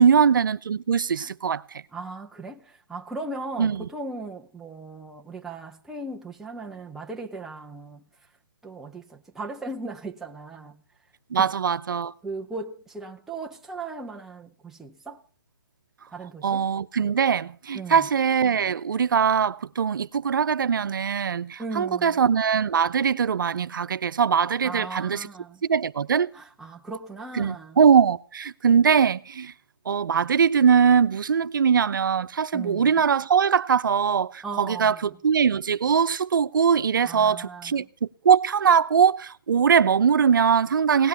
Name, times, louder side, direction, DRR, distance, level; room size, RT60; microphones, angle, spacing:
voice 1, 0.0-1.6 3.6-3.9 11.3-12.1 16.4-25.3 25.6-26.3 27.3-29.5 29.9-41.1, right 7 dB, 70° right, 0.8 m, -21 dB
voice 2, 1.9-8.0 8.6-10.8 11.3-11.5 12.2-15.2 16.1-16.7 17.7-18.1 21.6-22.3 24.6-25.6 26.3-27.8 32.5-32.9 34.4-35.1 37.0-37.9, right 3 dB, 5° right, 0.7 m, -37 dB
18.0 x 11.0 x 6.7 m
hypercardioid pair, 155°, 11 cm